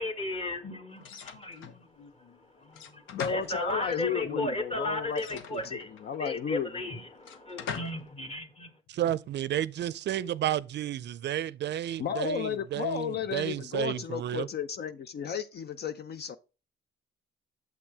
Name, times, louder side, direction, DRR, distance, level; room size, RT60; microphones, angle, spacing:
voice 1, 0.0-8.7, left 1 dB, 30° left, 1.7 m, -35 dB
sound 1, 1.0-1.8 2.7-4.0 5.1-6.2 7.2-8.1, left 7 dB, 85° left, 0.9 m, -42 dB
voice 2, 3.1-6.7 12.0-16.4, left 7 dB, 55° left, 0.6 m, -33 dB
voice 3, 8.9-14.5, right 11 dB, 60° right, 0.5 m, -32 dB
7.3 x 6.0 x 3.3 m
cardioid pair, 90°, 20 cm